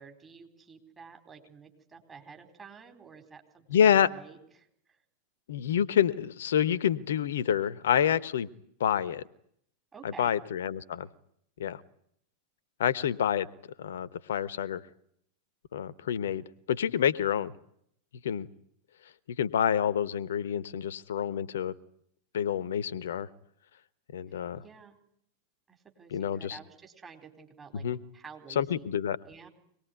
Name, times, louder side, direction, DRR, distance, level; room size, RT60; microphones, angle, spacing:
voice 1, 0.0-5.0 9.9-10.4 24.3-25.0 25.7-27.8 28.1-28.8 29.2-29.5, right 5 dB, 20° right, 4 dB, 4.4 m, -51 dB
voice 2, 3.7-4.1 5.5-8.5 8.8-9.2 10.0-11.1 11.6-11.8 12.8-13.5 13.8-14.8 15.7-17.5 18.2-18.5 19.3-21.7 22.3-23.3 24.1-24.6 26.1-26.6 27.7-28.0 28.5-29.2, left 9 dB, 60° left, 18 dB, 1.1 m, -28 dB
24.5 x 19.5 x 9.5 m, 0.71 s
figure-of-eight pair, 90°, 0 cm